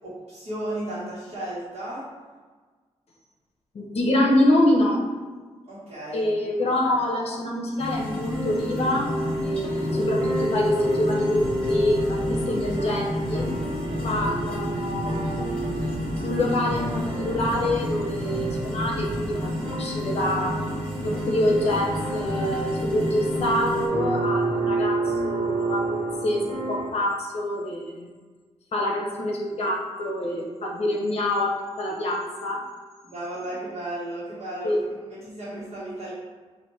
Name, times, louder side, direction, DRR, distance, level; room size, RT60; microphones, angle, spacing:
voice 1, 0.0-2.0 5.7-6.3 11.9-12.0 18.6-18.7 33.0-36.1, right 1 dB, 60° right, -9 dB, 1.3 m, -34 dB
voice 2, 3.7-5.0 6.1-9.1 9.4-12.2 12.5-13.5 14.0-15.4 15.7-20.6 21.0-28.1 28.7-32.6 34.6-34.8, left 1 dB, 60° left, -1 dB, 0.8 m, -26 dB
sound 1, 7.8-23.9, left 1 dB, 10° left, 1.1 m, -31 dB
sound 2, 8.3-26.9, right 1 dB, 80° right, 1.2 m, -30 dB
sound 3, 11.3-19.2, right 1 dB, 20° right, 0.6 m, -37 dB
4.1 x 2.6 x 4.6 m, 1.4 s
wide cardioid pair, 175°, 12 cm